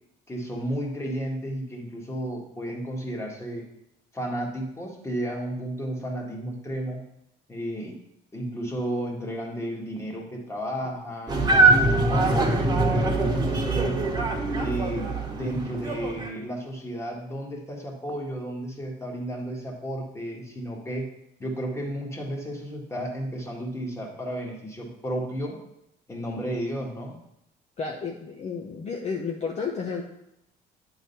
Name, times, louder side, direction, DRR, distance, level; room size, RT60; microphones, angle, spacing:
voice 1, 0.3-3.6 4.1-7.0 7.5-7.9 8.3-14.0 14.6-21.1 21.4-25.6 26.1-27.1, equal, 15° left, -1 dB, 1.9 m, -33 dB
sound 1, 11.3-16.3, right 2 dB, 25° right, 1.4 m, -23 dB
voice 2, 27.8-30.0, left 5 dB, 40° left, 1 dB, 0.9 m, -31 dB
9.2 x 4.0 x 5.6 m, 0.81 s
cardioid pair, 110°, 17 cm